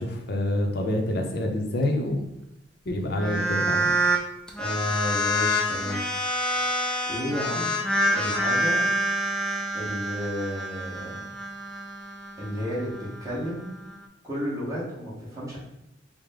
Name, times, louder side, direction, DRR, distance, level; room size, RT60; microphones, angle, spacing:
voice 1, 0.0-2.3 2.9-3.9, left 1 dB, 55° left, 3 dB, 0.6 m, -27 dB
sound 1, 3.1-4.2 4.5-14.0, equal, 5° left, 0.4 m, -27 dB
voice 2, 4.6-6.0 7.1-7.8 8.1-8.9 9.7-11.2 12.4-13.7 14.2-15.6, equal, 15° right, -7 dB, 1.3 m, -32 dB
4.8 x 2.1 x 3.6 m, 0.86 s
head